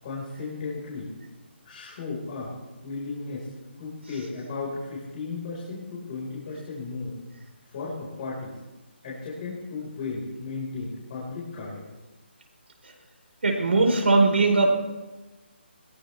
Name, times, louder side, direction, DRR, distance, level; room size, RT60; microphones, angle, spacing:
voice 1, 0.0-1.1 1.6-2.5 2.8-3.5 3.8-7.2 7.7-8.6 9.0-11.8, left 4 dB, 40° left, -7 dB, 4.9 m, -35 dB
voice 2, 13.4-14.7, right 3 dB, 80° right, 2 dB, 4.6 m, -20 dB
21.0 x 17.5 x 3.4 m, 1.1 s
figure-of-eight pair, 150°, 6 cm